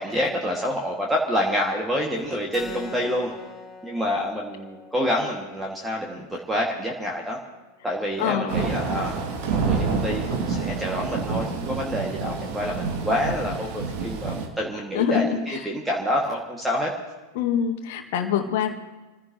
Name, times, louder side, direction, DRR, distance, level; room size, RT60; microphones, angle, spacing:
voice 1, 0.0-3.3 3.8-7.4 7.8-9.2 9.5-16.9, equal, 5° right, -1 dB, 1.9 m, -27 dB
Keyboard (musical), 2.5-7.6, left 3 dB, 15° left, 4.8 m, -43 dB
voice 2, 8.2-8.6 14.9-15.4 17.4-18.7, left 8 dB, 50° left, 5 dB, 1.8 m, -24 dB
Thunder / Rain, 8.5-14.5, right 4 dB, 45° right, 2.1 m, -28 dB
28.0 x 15.5 x 2.9 m, 1.2 s
figure-of-eight pair, 90°, 0 cm